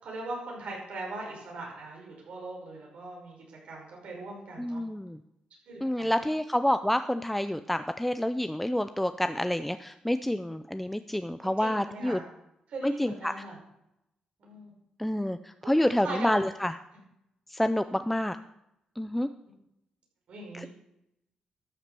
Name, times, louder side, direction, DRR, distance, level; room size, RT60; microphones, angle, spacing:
voice 1, 0.0-4.8 5.7-6.1 11.4-12.2 12.7-13.6 14.4-14.7 15.6-15.7 16.0-16.3 19.5-19.6 20.3-20.7, right 2 dB, 70° right, -1 dB, 5.4 m, -40 dB
voice 2, 4.6-5.2 5.8-12.2 12.8-13.3 15.0-16.7 17.5-18.4 19.0-19.3 20.5-20.7, left 1 dB, 5° left, 10 dB, 0.5 m, -28 dB
13.0 x 7.4 x 6.8 m, 0.84 s
cardioid pair, 105°, 2 cm